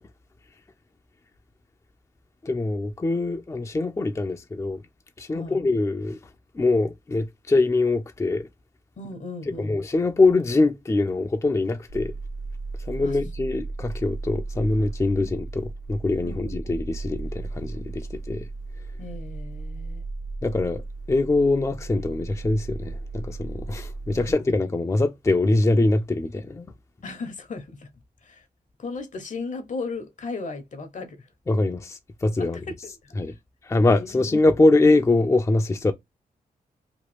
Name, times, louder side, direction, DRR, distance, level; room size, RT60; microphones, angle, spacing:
voice 1, 2.4-4.8 5.2-6.2 6.5-8.5 9.6-12.1 12.9-18.5 20.4-20.8 21.1-26.7 31.5-32.6 33.2-33.3 33.6-35.9, left 2 dB, 20° left, 0.4 m, -23 dB
voice 2, 5.3-5.6 9.0-9.8 13.0-13.2 15.0-15.1 16.2-16.6 19.0-20.0 24.1-24.3 27.0-27.9 28.2-28.5 28.8-31.3 32.4-32.7 33.0-33.2 34.0-34.2, left 3 dB, 55° left, 0.8 m, -36 dB
sound 1, 11.9-24.3, right 3 dB, 85° right, 1.3 m, -35 dB
2.9 x 2.3 x 3.0 m
cardioid pair, 70°, 15 cm